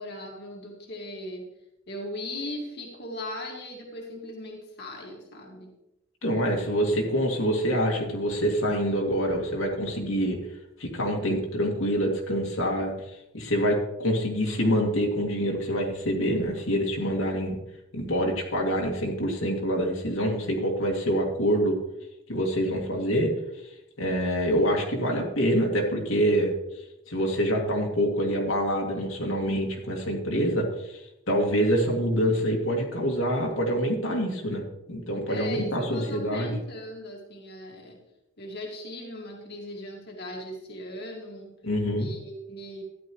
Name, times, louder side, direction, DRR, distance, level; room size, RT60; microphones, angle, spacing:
voice 1, 0.0-1.5 1.9-5.7 35.3-38.0 38.4-41.5 42.0-42.8, left 1 dB, 55° left, 0 dB, 2.0 m, -38 dB
voice 2, 6.2-10.4 10.8-12.9 13.3-17.6 17.9-21.8 22.3-23.3 24.0-26.5 27.1-34.6 34.9-36.6 41.6-42.1, equal, 80° left, 0 dB, 2.3 m, -26 dB
13.0 x 10.5 x 3.1 m, 0.91 s
head